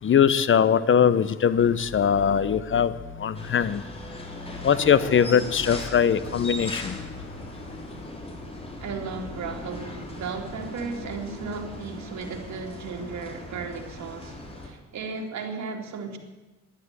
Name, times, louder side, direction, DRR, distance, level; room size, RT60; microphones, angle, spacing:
voice 1, 0.0-3.8 4.6-7.1, left 8 dB, 40° left, 0.8 m, -21 dB
sound 1, 1.4-10.8, left 3 dB, 85° left, 1.6 m, -45 dB
sound 2, 3.3-14.7, left 1 dB, 20° left, 3.7 m, -39 dB
voice 2, 8.8-14.4 14.6-16.2, right 4 dB, 65° right, 2.7 m, -35 dB
11.0 x 11.0 x 9.7 m
cardioid pair, 90°, 30 cm